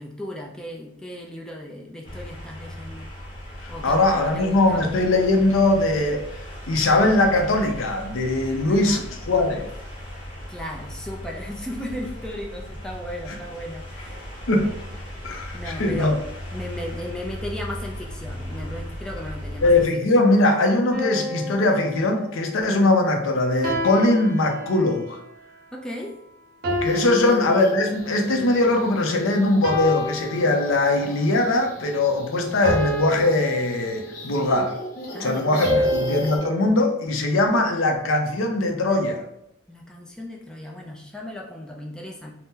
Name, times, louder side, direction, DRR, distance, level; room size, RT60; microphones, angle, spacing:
voice 1, 0.0-3.1 3.7-4.8 8.6-9.0 10.5-14.2 15.5-16.2 16.5-20.0 25.7-26.1 27.1-27.4 35.1-35.9 39.7-42.3, left 1 dB, 5° left, -1 dB, 0.3 m, -36 dB
sound 1, 2.0-19.9, equal, 25° left, 0.9 m, -37 dB
voice 2, 3.6-6.2 6.7-9.0 9.3-9.7 14.5-14.8 15.2-16.2 19.6-25.2 26.8-34.8 35.2-39.2, left 2 dB, 90° left, 4 dB, 0.5 m, -21 dB
sound 2, 20.9-22.6 23.6-25.1 26.6-28.3 29.6-31.1 32.6-34.4 35.6-36.7, left 1 dB, 55° right, 0.8 m, -29 dB
sound 3, 26.7-36.4, equal, 45° left, 0.6 m, -39 dB
2.7 x 2.1 x 3.6 m, 0.79 s
head